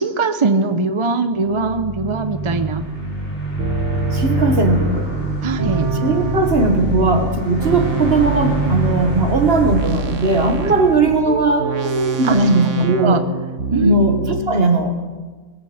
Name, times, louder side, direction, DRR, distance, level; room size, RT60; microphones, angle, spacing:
voice 1, 0.0-2.8 5.4-6.0 10.6-10.8 11.1-12.4 13.0-13.2 13.7-14.5, right 3 dB, 35° right, 9 dB, 0.5 m, -22 dB
sound 1, 1.5-11.7, right 1 dB, 60° left, 3.4 m, -25 dB
sound 2, 2.4-2.8 3.6-7.0 7.6-14.4, right 5 dB, 75° right, 1.4 m, -27 dB
voice 2, 4.1-5.1 6.0-11.7 12.2-13.2 13.8-14.2 14.5-14.9, right 3 dB, 50° right, 5 dB, 1.6 m, -17 dB
21.0 x 7.4 x 7.8 m, 1.3 s
omnidirectional pair, 1.3 m